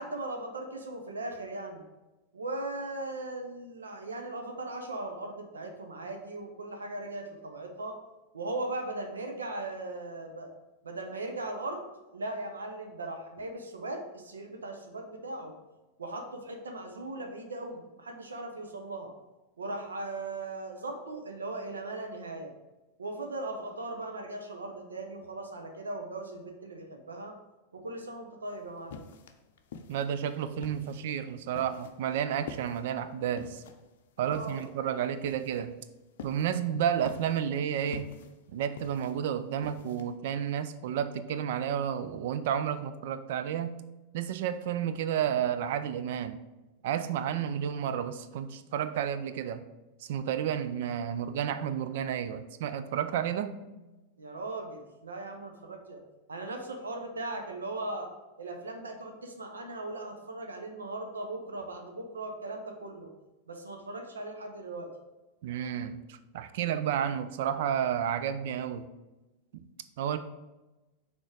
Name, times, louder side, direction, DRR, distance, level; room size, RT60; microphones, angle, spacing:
voice 1, 0.0-1.9 2.3-7.9 8.3-10.5 10.8-11.8 12.1-15.5 16.0-19.1 19.6-22.5 23.0-27.3 27.7-29.1 34.2-34.6 54.2-56.0 56.3-58.1 58.4-63.1 63.5-64.9, right 2 dB, 75° right, 4 dB, 0.8 m, -38 dB
sound 1, 28.5-40.1, left 5 dB, 55° left, 0.6 m, -48 dB
voice 2, 29.9-33.6 34.2-35.7 36.2-38.1 38.5-43.8 44.1-46.4 46.8-49.6 50.0-53.6 65.4-68.9 69.5-69.7 70.0-70.2, right 9 dB, 55° right, 11 dB, 0.4 m, -31 dB
6.2 x 3.7 x 4.7 m, 1.1 s
figure-of-eight pair, 90°, 0 cm